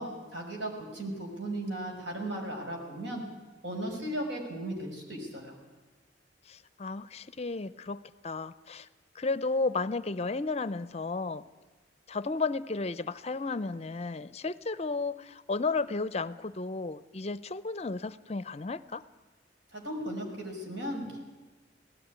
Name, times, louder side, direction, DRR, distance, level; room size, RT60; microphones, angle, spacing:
voice 1, 0.0-3.2 3.6-5.6 19.7-21.2, right 1 dB, 75° right, 1 dB, 5.6 m, -36 dB
voice 2, 6.5-8.9 9.1-11.4 12.1-19.0, left 3 dB, 35° left, 16 dB, 0.5 m, -33 dB
18.5 x 15.5 x 9.6 m, 1.3 s
head